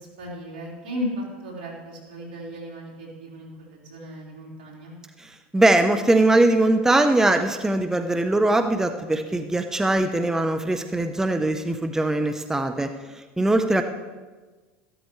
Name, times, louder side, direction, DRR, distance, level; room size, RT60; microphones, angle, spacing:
voice 1, 0.0-4.9, left 1 dB, 80° right, -3 dB, 4.4 m, -35 dB
voice 2, 5.2-13.8, right 2 dB, 10° right, 8 dB, 0.7 m, -21 dB
14.5 x 12.5 x 3.2 m, 1.3 s
hypercardioid pair, 95°, 6 cm